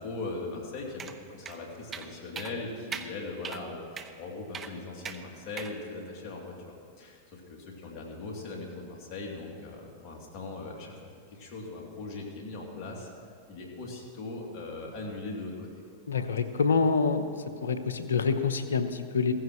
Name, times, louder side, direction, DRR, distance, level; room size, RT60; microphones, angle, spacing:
voice 1, 0.0-13.1 13.5-15.7, left 3 dB, 45° left, -2 dB, 3.1 m, -40 dB
sound 1, 1.0-1.2 1.5-1.6 1.9-2.1 2.4-2.5 2.9-3.1 3.4-3.6 4.0-4.1 4.5-4.7 5.0-5.2 5.6-5.7, right 6 dB, 25° right, 0.8 m, -38 dB
voice 2, 16.1-17.3 17.6-19.3, left 5 dB, 85° left, 10 dB, 0.9 m, -26 dB
16.0 x 15.0 x 3.2 m, 2.2 s
hypercardioid pair, 105°, 0 cm